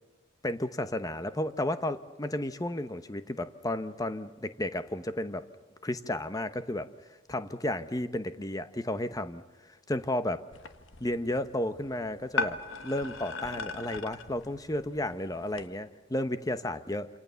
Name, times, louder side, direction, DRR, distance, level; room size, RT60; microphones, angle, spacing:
voice 1, 0.4-5.5 5.8-6.9 7.3-9.4 9.9-10.4 11.0-17.1, left 1 dB, 15° left, 11 dB, 0.9 m, -33 dB
sound 1, 10.5-15.7, left 3 dB, 70° left, 1.4 m, -38 dB
27.5 x 27.0 x 7.0 m, 1.2 s
head